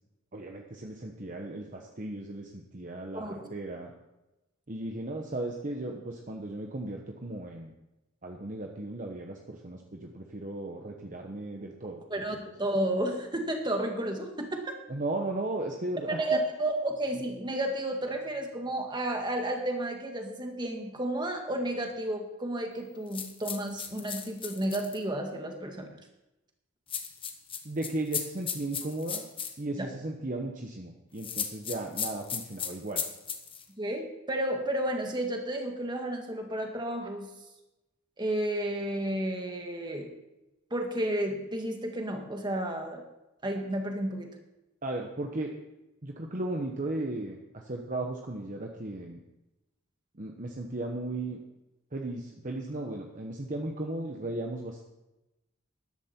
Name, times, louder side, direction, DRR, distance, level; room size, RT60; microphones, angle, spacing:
voice 1, 0.3-3.9 4.7-7.7 8.2-12.0 14.9-16.4 27.6-29.2 29.6-33.0 44.8-45.5 46.0-49.2 50.2-51.4 51.9-54.8, right 2 dB, 40° right, 2 dB, 1.0 m, -36 dB
voice 2, 3.1-3.5 12.1-14.7 16.1-25.9 29.8-29.9 33.8-37.3 38.2-40.1 40.7-43.0 43.4-44.3, right 1 dB, 20° right, 3 dB, 1.9 m, -32 dB
sound 1, 23.1-25.0 26.9-29.5 31.2-33.6, left 7 dB, 25° left, 1.2 m, -35 dB
13.5 x 11.5 x 4.4 m, 0.96 s
head